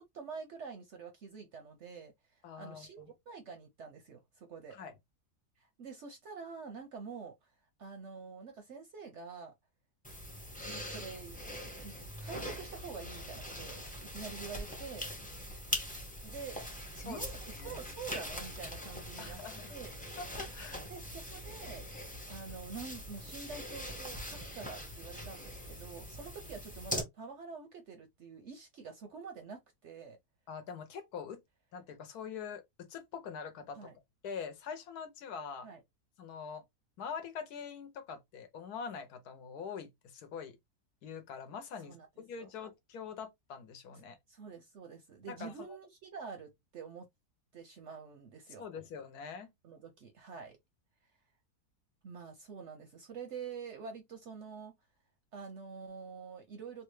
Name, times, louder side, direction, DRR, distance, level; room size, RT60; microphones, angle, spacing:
voice 1, 0.0-4.8 5.6-7.5 7.8-9.5 10.6-11.4 11.8-11.9 12.2-15.1 16.2-16.6 17.0-19.4 19.7-19.9 20.7-21.8 22.3-30.2 33.7-33.9 35.6-35.8 41.8-42.1 42.4-42.5 44.3-47.1 47.5-48.6 49.6-50.6 52.0-54.7 55.3-56.8, right 5 dB, 60° right, 0.8 m, -47 dB
voice 2, 2.4-3.1 4.7-4.9 17.0-17.8 19.2-19.7 20.2-20.8 30.5-31.4 31.7-33.9 34.2-35.7 36.2-36.6 37.0-40.6 41.0-44.2 45.3-45.7 48.6-49.5, left 6 dB, 75° left, 1.3 m, -44 dB
sound 1, 10.0-27.0, left 1 dB, 10° left, 0.6 m, -42 dB
3.4 x 2.3 x 3.1 m
omnidirectional pair, 1.7 m